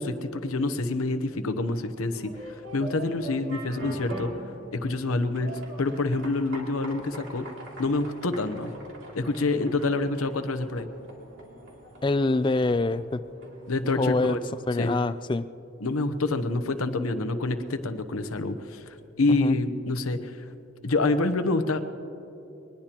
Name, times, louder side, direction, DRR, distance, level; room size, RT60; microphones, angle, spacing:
voice 1, 0.0-4.3 4.7-7.5 7.8-8.8 9.1-10.9 13.7-14.4 14.8-15.0 15.8-20.4 20.8-21.8, left 2 dB, 90° left, 10 dB, 0.9 m, -27 dB
sound 1, 2.1-14.9, right 1 dB, 60° right, 2.7 m, -43 dB
voice 2, 12.0-13.2 14.0-14.4 14.7-15.5 19.3-19.6, left 2 dB, 20° left, 14 dB, 0.3 m, -25 dB
23.0 x 20.0 x 3.0 m, 2.9 s
head